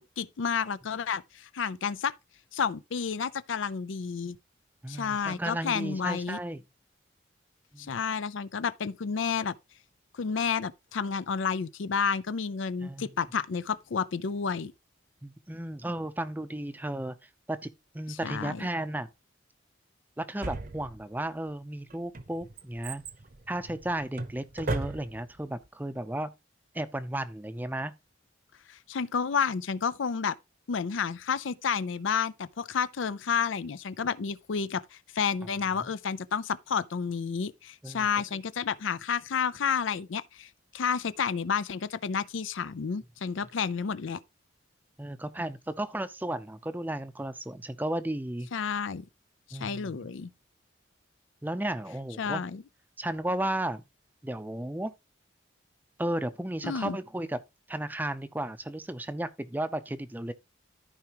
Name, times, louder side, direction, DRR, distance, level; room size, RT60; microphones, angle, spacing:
voice 1, 0.2-2.1 2.5-4.4 4.9-6.4 7.9-9.5 10.1-14.7 18.1-18.6 28.7-30.4 30.7-34.8 35.1-44.2 48.5-49.1 49.5-50.3 52.2-52.6 56.6-57.0, left 6 dB, 80° left, 0.5 m, -30 dB
voice 2, 4.8-6.6 7.7-8.0 12.8-13.1 15.2-17.2 17.5-19.1 20.2-23.0 23.5-26.3 26.7-27.9 37.8-38.1 45.0-48.5 49.5-50.1 51.4-52.4 53.0-53.8 54.2-54.9 56.0-57.4 57.7-60.3, right 1 dB, 10° right, 0.5 m, -34 dB
Drawer open or close, 20.4-21.3 21.9-25.4 25.6-25.7, right 2 dB, 45° right, 0.8 m, -36 dB
14.0 x 4.8 x 3.0 m
head